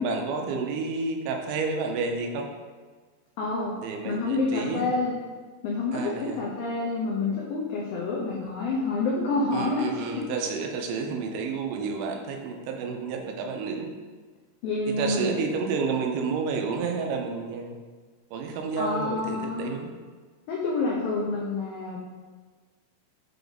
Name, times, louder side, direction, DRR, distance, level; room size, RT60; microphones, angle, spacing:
voice 1, 0.0-2.5 3.8-5.1 5.9-6.4 9.5-13.9 14.9-17.8 18.3-19.9, right 4 dB, 85° right, 3 dB, 3.1 m, -30 dB
voice 2, 3.4-3.7 4.0-5.1 5.6-10.2 14.6-15.3 18.8-19.7 20.5-22.0, left 3 dB, 85° left, -4 dB, 2.0 m, -28 dB
7.6 x 3.5 x 3.9 m, 1.5 s
omnidirectional pair, 5.2 m